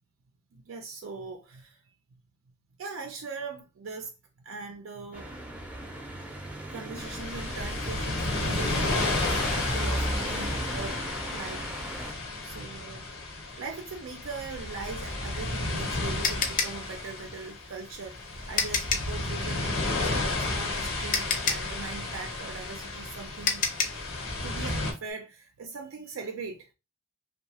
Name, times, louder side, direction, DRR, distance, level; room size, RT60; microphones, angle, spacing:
voice 1, 0.5-1.8 2.8-4.1 4.4-5.3 6.7-9.4 9.7-12.0 12.4-13.1 13.5-23.7 24.4-26.7, right 4 dB, 80° right, 0.4 m, -41 dB
sound 1, 5.1-12.1, right 1 dB, 5° right, 0.5 m, -36 dB
sound 2, 7.0-24.9, left 2 dB, 85° left, 1.1 m, -32 dB
sound 3, 15.3-19.2 20.6-20.7 21.1-24.1, left 5 dB, 40° left, 0.5 m, -30 dB
2.8 x 2.2 x 2.9 m
head